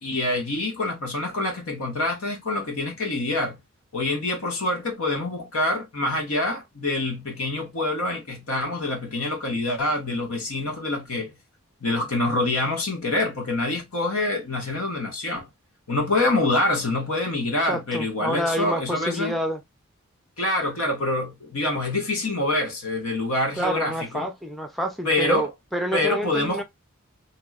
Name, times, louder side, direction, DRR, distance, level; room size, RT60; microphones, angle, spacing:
voice 1, 0.0-3.6 3.9-11.3 11.8-15.5 15.9-19.4 20.4-24.3 25.0-25.5 25.9-26.6, left 2 dB, 80° left, 1.3 m, -26 dB
voice 2, 17.6-19.6 23.6-26.6, equal, ahead, 0.5 m, -28 dB
3.0 x 2.7 x 2.3 m
head